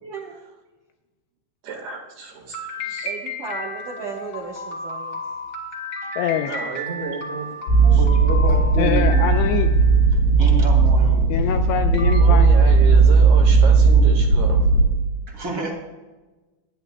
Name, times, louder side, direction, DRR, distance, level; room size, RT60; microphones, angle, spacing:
voice 1, 0.0-0.4 3.0-5.2, right 5 dB, 85° right, -2 dB, 1.8 m, -35 dB
voice 2, 1.6-3.1 6.4-7.5 7.9-8.0 12.2-14.6, right 4 dB, 60° right, 0 dB, 3.4 m, -32 dB
sound 1, 2.5-9.9 11.4-11.5 11.9-12.2, left 1 dB, 35° left, 1.8 m, -33 dB
voice 3, 6.2-6.6 8.8-9.7 11.3-12.5, left 9 dB, 85° left, 6 dB, 2.6 m, -24 dB
sound 2, 7.7-14.9, right 4 dB, 70° left, 3.6 m, -15 dB
voice 4, 7.8-9.3 10.1-11.3 15.3-15.7, right 3 dB, 30° right, 0 dB, 1.8 m, -29 dB
25.0 x 10.5 x 2.3 m, 1.2 s
omnidirectional pair, 5.6 m